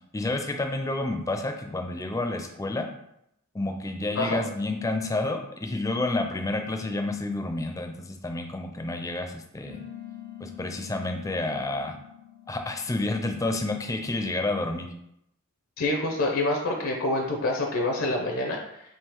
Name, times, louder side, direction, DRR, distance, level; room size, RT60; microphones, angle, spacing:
voice 1, 0.1-2.9 3.5-9.8 10.4-12.0 12.5-14.9, left 2 dB, 15° left, 4 dB, 0.4 m, -29 dB
sound 1, 9.7-14.6, left 11 dB, 80° right, 0.9 m, -46 dB
voice 2, 15.8-18.8, left 2 dB, 80° left, 1 dB, 0.6 m, -27 dB
3.7 x 2.8 x 4.5 m, 0.78 s
head